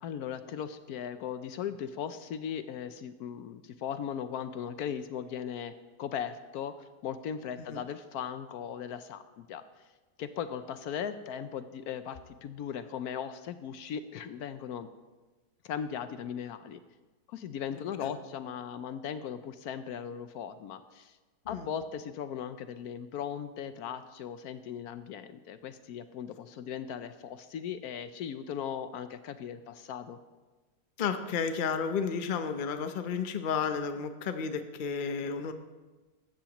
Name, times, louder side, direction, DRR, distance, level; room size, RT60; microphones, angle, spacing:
voice 1, 0.0-9.6 10.2-14.9 15.6-16.8 17.3-21.2 21.5-30.2, left 8 dB, 75° left, 11 dB, 1.1 m, -38 dB
voice 2, 31.0-35.5, left 6 dB, 45° left, 8 dB, 0.7 m, -32 dB
15.5 x 13.0 x 3.0 m, 1.2 s
omnidirectional pair, 1.7 m